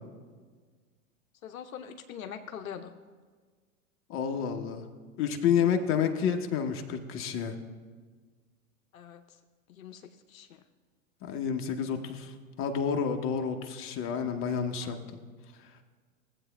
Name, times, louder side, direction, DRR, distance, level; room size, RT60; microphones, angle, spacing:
voice 1, 1.4-2.9 8.9-9.4 9.7-10.6 14.8-15.0, left 8 dB, 70° left, 7 dB, 0.7 m, -43 dB
voice 2, 4.1-4.8 5.2-7.6 11.2-12.3 12.6-15.0, left 7 dB, 30° left, 5 dB, 0.8 m, -29 dB
16.5 x 8.0 x 2.2 m, 1.5 s
figure-of-eight pair, 95°, 44 cm